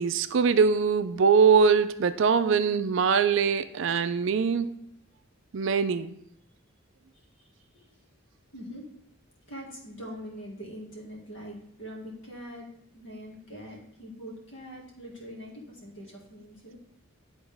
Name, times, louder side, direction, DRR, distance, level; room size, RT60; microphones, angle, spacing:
voice 1, 0.0-4.7 5.5-6.1, right 5 dB, 60° right, 11 dB, 0.4 m, -22 dB
voice 2, 8.5-8.8 9.5-12.7 12.9-16.8, equal, 60° left, -2 dB, 2.0 m, -43 dB
11.0 x 4.0 x 3.4 m, 0.74 s
head